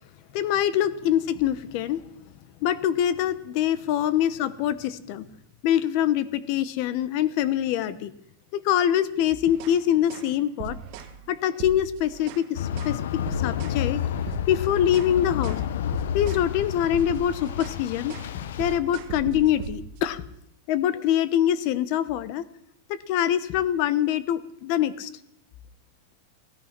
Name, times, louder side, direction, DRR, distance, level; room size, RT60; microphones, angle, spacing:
voice 1, 0.3-2.0 2.6-5.3 5.6-8.1 8.5-10.8 11.3-14.0 14.5-15.6 16.1-20.2 20.7-22.4 22.9-25.1, left 11 dB, 40° left, 17 dB, 0.9 m, -24 dB
sound 1, 9.5-9.8 10.1-10.3 10.6-11.1 11.5-12.5 12.8-13.0 13.3-13.8 14.2-15.1 15.4-15.7 15.9-16.5 16.8-17.8 18.1-18.3 18.6-20.1, right 8 dB, 40° right, 1.5 m, -39 dB
sound 2, 12.5-18.8, left 9 dB, 75° left, 0.8 m, -30 dB
17.0 x 13.5 x 5.9 m, 0.75 s
supercardioid pair, 170°, 0 cm